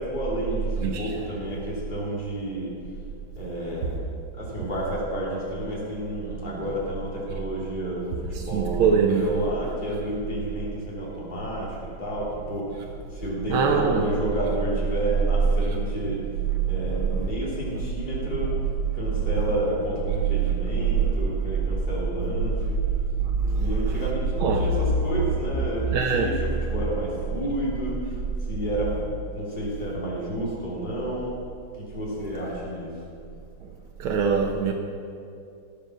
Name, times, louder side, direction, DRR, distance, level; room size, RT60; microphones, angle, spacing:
voice 1, 0.0-2.7 3.3-4.0 4.3-16.3 16.6-18.6 18.9-22.8 23.5-28.2 28.5-31.4 31.8-33.0, right 1 dB, 20° left, -6 dB, 3.0 m, -31 dB
voice 2, 0.8-1.1 6.4-6.6 8.4-9.5 13.5-14.1 16.6-17.3 23.2-24.0 24.4-24.7 25.9-26.3 33.6-33.7 34.0-34.7, right 5 dB, 90° right, 1 dB, 1.7 m, -23 dB
17.5 x 6.8 x 6.1 m, 2.5 s
omnidirectional pair, 2.2 m